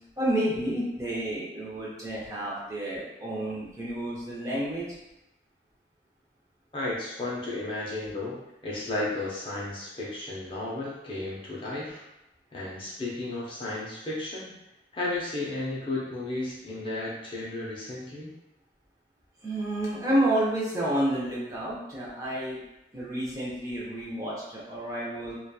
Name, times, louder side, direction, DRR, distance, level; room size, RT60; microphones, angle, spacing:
voice 1, 0.2-4.9 19.4-22.6 22.9-25.4, right 1 dB, 20° right, -7 dB, 0.5 m, -30 dB
voice 2, 6.7-12.0 12.5-14.5 14.9-18.3, left 2 dB, 30° left, -5 dB, 0.5 m, -33 dB
2.8 x 2.2 x 2.2 m, 0.89 s
head